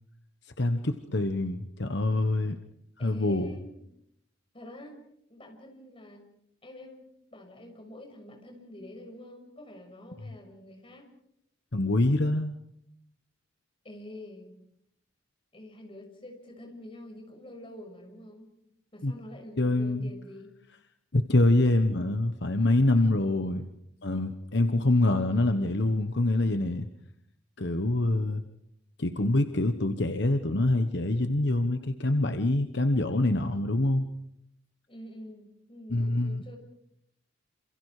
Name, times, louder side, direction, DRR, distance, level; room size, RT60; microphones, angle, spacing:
voice 1, 0.6-2.6 3.0-3.5 11.7-12.5 19.0-19.1 19.6-20.1 21.1-23.6 24.0-26.9 27.6-28.4 29.0-34.1 35.9-36.4, left 2 dB, 60° left, 8 dB, 1.2 m, -25 dB
voice 2, 3.0-3.8 4.5-5.0 5.3-6.3 6.6-7.1 7.3-11.1 13.8-14.5 15.5-18.5 18.9-20.6 24.7-25.0 34.9-36.6, left 1 dB, 30° left, 3 dB, 6.4 m, -47 dB
28.0 x 27.0 x 5.0 m, 0.77 s
head